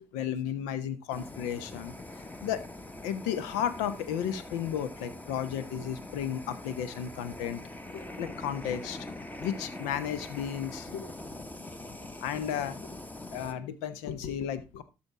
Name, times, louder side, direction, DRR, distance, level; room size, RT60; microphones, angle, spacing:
voice 1, 0.1-1.9 2.4-2.6 3.0-7.6 7.9-9.1 9.4-11.1 12.2-12.8 13.3-14.8, left 9 dB, 75° left, 14 dB, 0.9 m, -33 dB
Fire, 1.1-13.5, left 2 dB, 15° left, 1.4 m, -43 dB
13.0 x 4.5 x 4.7 m, 0.28 s
hypercardioid pair, 50°, 12 cm